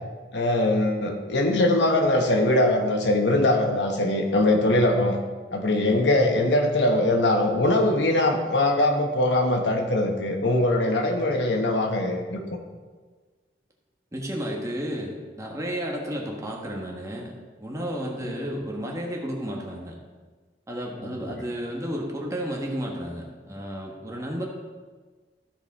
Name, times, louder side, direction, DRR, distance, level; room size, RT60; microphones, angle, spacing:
voice 1, 0.3-5.2 5.5-12.4 21.0-21.2, left 1 dB, 85° left, 3 dB, 1.2 m, -22 dB
voice 2, 14.1-17.3 17.6-20.0 20.7-24.4, equal, 20° right, -1 dB, 1.4 m, -32 dB
14.0 x 5.1 x 4.2 m, 1.4 s
head